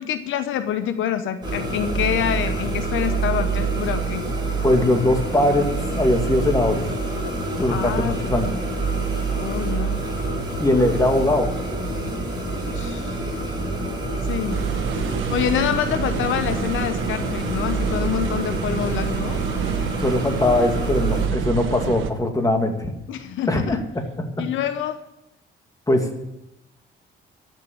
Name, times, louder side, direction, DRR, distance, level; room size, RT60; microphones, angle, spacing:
voice 1, 0.0-4.3 7.7-8.5 9.4-10.0 12.7-13.2 14.3-14.6 15.3-19.4 23.1-23.8 24.4-25.0, left 9 dB, 80° left, 9 dB, 0.9 m, -26 dB
sound 1, 1.4-21.3, right 3 dB, 20° right, 4.6 m, -27 dB
voice 2, 4.6-5.7 5.9-6.8 7.6-8.5 10.6-11.5 20.0-22.7 23.5-23.8 25.9-26.3, left 1 dB, 15° left, 3 dB, 2.3 m, -20 dB
sound 2, 14.5-22.1, right 8 dB, 80° right, 1.1 m, -28 dB
13.5 x 6.7 x 8.7 m, 0.88 s
cardioid pair, 90°, 20 cm